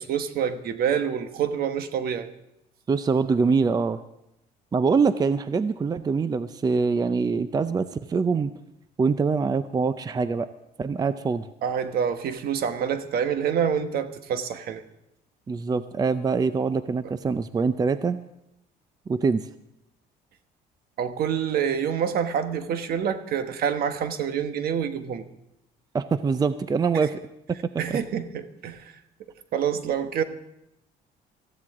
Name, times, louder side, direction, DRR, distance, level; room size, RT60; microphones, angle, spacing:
voice 1, 0.0-2.3 11.6-14.8 21.0-25.2 27.8-28.9 29.5-30.2, right 8 dB, 65° right, 9 dB, 1.2 m, -27 dB
voice 2, 2.9-4.0 4.7-8.5 9.0-10.5 10.8-11.5 15.5-18.2 19.1-19.5 25.9-27.2 27.5-27.6 27.9-28.0, right 5 dB, 25° right, 13 dB, 0.5 m, -24 dB
18.5 x 14.5 x 3.7 m, 0.83 s
cardioid pair, 110°, 17 cm